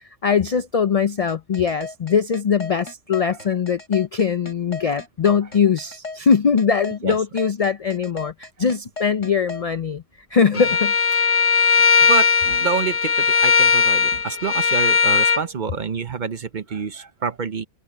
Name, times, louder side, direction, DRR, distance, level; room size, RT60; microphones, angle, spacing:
voice 1, 0.2-10.0 10.3-11.4, left 6 dB, 55° left, 0.4 m, -21 dB
sound 1, 1.3-9.6, left 3 dB, 80° left, 7.4 m, -35 dB
Bowed string instrument, 10.5-15.4, left 5 dB, 35° left, 0.7 m, -18 dB
voice 2, 11.9-17.7, right 5 dB, 45° right, 0.8 m, -27 dB
omnidirectional pair, 1.2 m